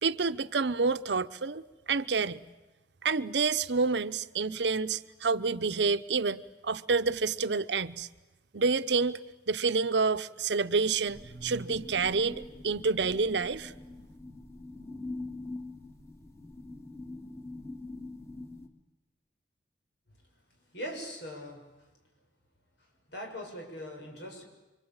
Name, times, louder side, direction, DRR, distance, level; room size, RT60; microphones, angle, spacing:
voice 1, 0.0-2.4 3.0-8.1 8.5-9.2 9.5-13.7, right 4 dB, 70° right, 0.8 m, -28 dB
sound 1, 11.1-18.7, left 2 dB, 15° left, 2.8 m, -44 dB
voice 2, 20.5-21.9 22.8-24.4, equal, 70° left, 6.4 m, -42 dB
26.5 x 24.5 x 8.8 m
head